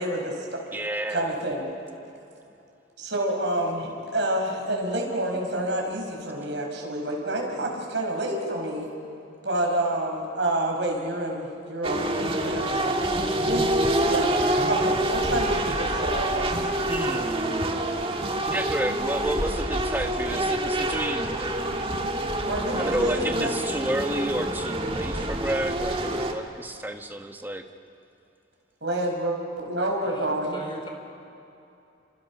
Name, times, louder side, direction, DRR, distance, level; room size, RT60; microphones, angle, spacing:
voice 1, 0.0-0.6 1.1-1.7 3.0-8.9 9.4-12.9 13.4-13.8 14.1-14.3 14.7-16.5 22.5-23.5 28.8-30.6, right 1 dB, 65° right, 0 dB, 5.1 m, -28 dB
voice 2, 0.7-1.4 16.9-17.6 18.5-21.4 22.7-27.6, right 1 dB, 10° right, 5 dB, 1.2 m, -30 dB
sound 1, 11.8-26.3, right 1 dB, 30° right, 1.6 m, -26 dB
voice 3, 30.0-30.9, left 1 dB, 25° left, 2 dB, 3.4 m, -40 dB
30.0 x 26.5 x 6.0 m, 2.7 s
head